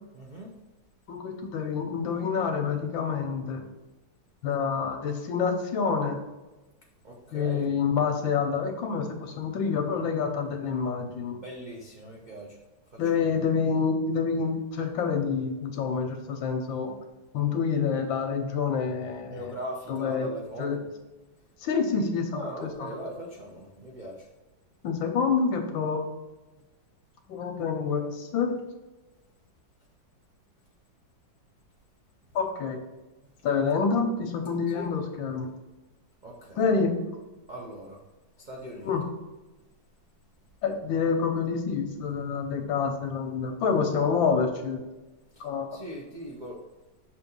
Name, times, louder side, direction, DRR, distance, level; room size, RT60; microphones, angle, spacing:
voice 1, 0.1-0.5 7.0-7.7 11.4-12.6 12.9-13.4 19.3-20.9 22.3-24.3 34.7-34.9 36.2-36.7 37.5-38.0 38.4-38.9 45.3-45.4 45.7-46.6, equal, 65° right, -3 dB, 0.4 m, -40 dB
voice 2, 1.1-3.7 4.4-6.2 7.3-11.4 13.0-16.9 17.3-19.6 19.9-20.3 20.6-20.8 21.6-22.9 24.8-26.0 27.3-28.6 32.3-32.8 33.4-35.5 36.6-36.9 38.8-39.0 40.6-44.8 45.4-45.8, left 5 dB, 80° left, 4 dB, 1.6 m, -27 dB
6.2 x 2.9 x 5.3 m, 1.1 s
omnidirectional pair, 2.1 m